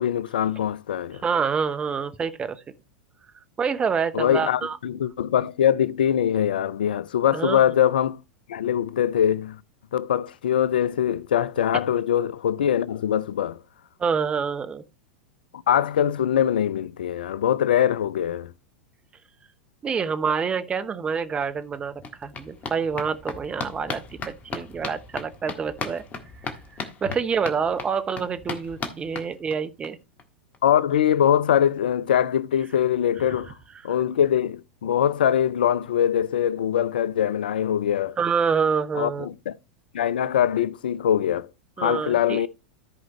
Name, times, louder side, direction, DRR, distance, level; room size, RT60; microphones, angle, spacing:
voice 1, 0.0-1.2 4.1-8.2 8.5-9.6 9.9-13.6 15.7-18.5 30.6-33.5 33.8-38.2 39.0-39.5 39.9-41.5 41.8-42.5, left 10 dB, 65° left, 0.4 m, -22 dB
voice 2, 1.2-2.6 3.6-4.8 7.3-7.6 14.0-14.8 19.8-26.0 27.0-30.0 38.2-39.3 41.8-42.4, right 6 dB, 20° right, 0.9 m, -27 dB
sound 1, 21.1-21.2 21.4-29.9 30.2-30.3 30.5-30.6 30.9-31.0, left 4 dB, 30° left, 1.5 m, -37 dB
13.5 x 5.0 x 3.0 m
figure-of-eight pair, 90°, 5 cm